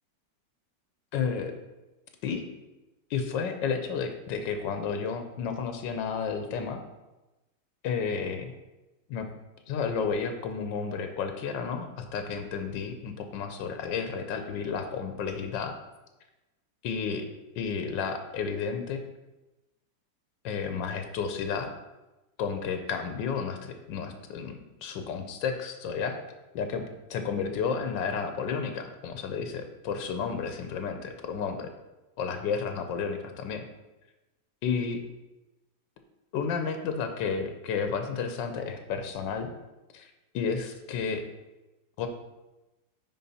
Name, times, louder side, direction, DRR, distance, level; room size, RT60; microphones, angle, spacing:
voice 1, 1.1-1.5 2.2-2.4 3.1-6.8 7.8-8.5 9.1-9.3 9.7-15.7 16.8-17.2 17.6-19.0 20.4-21.7 22.4-23.6 23.9-26.2 26.5-26.8 27.1-31.7 32.2-33.6 34.6-35.0 36.3-39.5 39.9-41.2 42.0-42.1, left 6 dB, 85° left, 6 dB, 1.4 m, -31 dB
9.4 x 4.1 x 4.2 m, 1.0 s
omnidirectional pair, 1.9 m